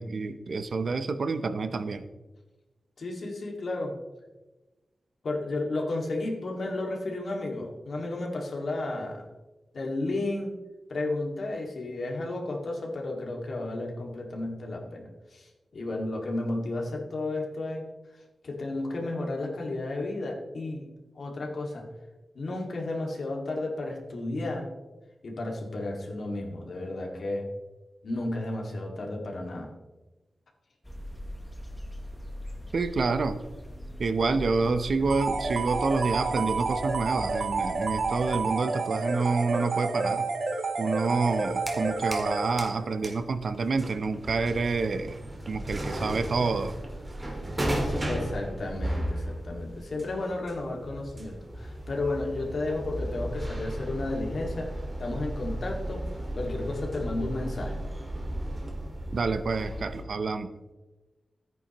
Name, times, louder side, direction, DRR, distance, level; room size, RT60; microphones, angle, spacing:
voice 1, 0.0-2.1 32.7-33.4 34.0-40.3 40.8-45.2 45.5-46.8 59.1-60.5, right 4 dB, 60° right, 10 dB, 0.7 m, -28 dB
voice 2, 3.0-3.9 5.2-9.2 9.7-10.5 10.9-17.8 18.4-20.9 21.2-21.9 22.4-24.7 25.2-27.5 28.0-29.7 47.7-56.0 56.4-57.8, left 2 dB, 60° left, 0 dB, 2.1 m, -33 dB
sound 1, 30.8-38.4, equal, 5° left, 1.0 m, -40 dB
sound 2, 35.1-42.9, right 3 dB, 75° right, 1.5 m, -30 dB
sound 3, 41.2-42.3 42.6-60.0, right 1 dB, 20° right, 1.8 m, -35 dB
14.5 x 9.2 x 3.0 m, 1.1 s
wide cardioid pair, 135°, 0 cm